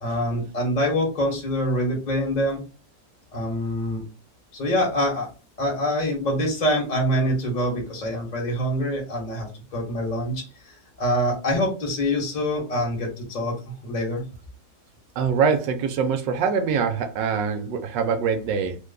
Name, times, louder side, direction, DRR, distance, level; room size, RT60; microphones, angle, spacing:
voice 1, 0.0-2.6 3.3-4.0 4.5-5.3 5.6-9.5 9.7-13.5 13.8-14.2, equal, 30° left, 1.0 m, -25 dB
voice 2, 15.2-18.8, right 6 dB, 75° right, 1.2 m, -24 dB
3.2 x 2.2 x 3.7 m
omnidirectional pair, 2.0 m